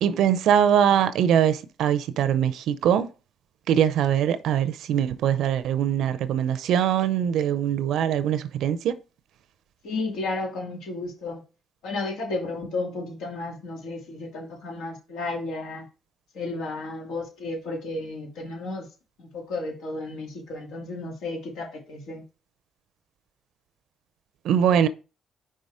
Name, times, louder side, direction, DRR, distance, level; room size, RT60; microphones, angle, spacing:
voice 1, 0.0-3.1 3.7-9.0 24.4-24.9, right 9 dB, 80° right, 0.5 m, -22 dB
voice 2, 9.8-11.4 11.8-15.8 16.3-18.9 19.2-22.2, left 2 dB, 85° left, 2.4 m, -33 dB
5.5 x 3.7 x 4.8 m
cardioid pair, 90°, 0 cm